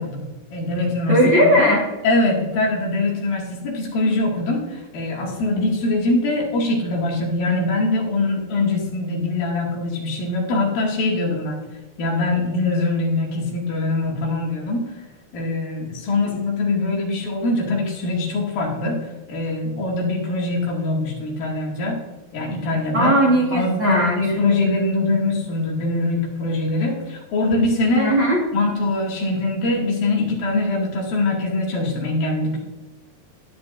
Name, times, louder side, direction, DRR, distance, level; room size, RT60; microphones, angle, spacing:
voice 1, 0.0-1.2 1.6-1.7 2.0-11.6 12.0-14.9 15.3-22.0 22.3-23.1 23.5-28.1 28.5-32.6, left 2 dB, 75° left, -2 dB, 3.7 m, -23 dB
voice 2, 1.1-1.9 22.9-24.3 28.0-28.4, equal, 45° right, -5 dB, 1.6 m, -17 dB
11.0 x 9.6 x 2.6 m, 1.1 s
omnidirectional pair, 4.2 m